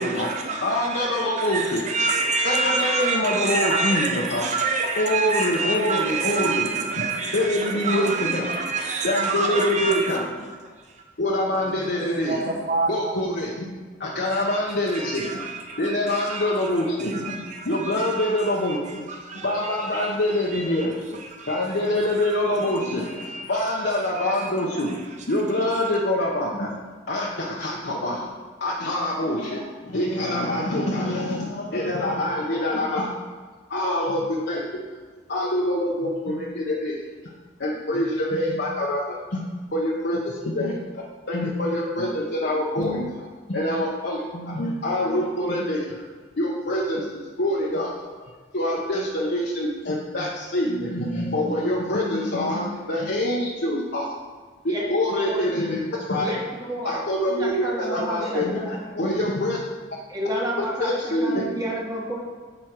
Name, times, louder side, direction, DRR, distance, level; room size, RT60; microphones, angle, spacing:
voice 1, 0.0-10.2 10.8-11.0 12.0-13.2 14.3-16.7 17.0-18.8 19.1-20.1 20.5-20.9 21.2-21.8 22.2-22.4 22.7-23.7 23.9-24.5 25.5-25.8, right 3 dB, 40° right, 0.8 m, -28 dB
voice 2, 0.6-1.8 2.4-4.4 5.0-6.7 7.3-8.5 9.0-10.3 11.2-12.6 12.9-13.7 14.0-15.5 15.8-19.0 19.4-21.2 21.5-25.0 25.3-26.7 27.1-28.3 28.6-33.1 33.7-34.6 35.3-36.9 37.6-39.4 39.7-46.1 46.4-47.9 48.2-54.1 54.6-55.8 56.1-56.3 56.8-58.6 58.9-59.6 60.6-61.4, left 1 dB, 60° left, 1.0 m, -25 dB
voice 3, 11.2-11.9 19.9-20.0 54.7-55.5 56.1-57.0 57.4-59.0 59.2-59.3 60.1-62.2, equal, 20° right, 1.6 m, -31 dB
7.8 x 5.2 x 6.1 m
head